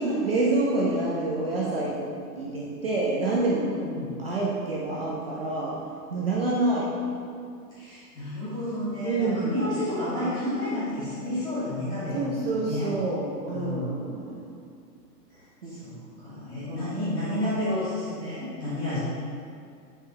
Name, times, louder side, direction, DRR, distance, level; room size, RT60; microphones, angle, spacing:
voice 1, 0.0-2.1 2.3-3.7 4.2-5.7 6.1-6.9 9.0-9.7 12.1-14.4 15.6-15.8 16.7-16.9, right 2 dB, 35° right, -5 dB, 0.7 m, -27 dB
voice 2, 3.6-4.1 7.7-12.9 13.5-13.9 15.6-19.0, left 1 dB, 10° left, -12 dB, 1.2 m, -31 dB
6.6 x 4.8 x 4.4 m, 2.3 s
hypercardioid pair, 180°, 49 cm